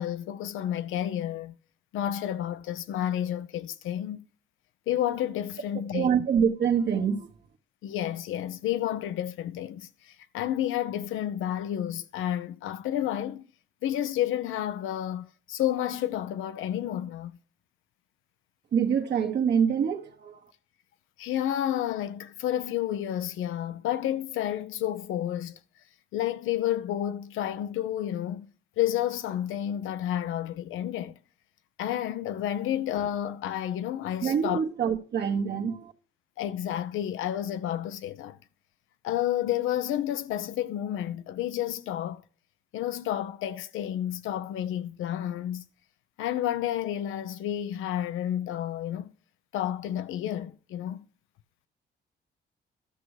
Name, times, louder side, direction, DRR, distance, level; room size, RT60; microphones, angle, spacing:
voice 1, 0.0-1.5 1.9-4.2 4.9-6.1 7.8-13.4 13.8-17.3 21.2-25.6 26.1-28.5 28.8-31.2 31.8-34.6 36.4-38.4 39.0-42.2 42.7-45.6 46.2-49.1 49.5-51.0, left 11 dB, 85° left, 0.8 m, -30 dB
voice 2, 5.9-7.3 18.7-20.5 34.2-35.9, right 7 dB, 60° right, 1.3 m, -25 dB
13.0 x 6.1 x 4.9 m
cardioid pair, 90°, 20 cm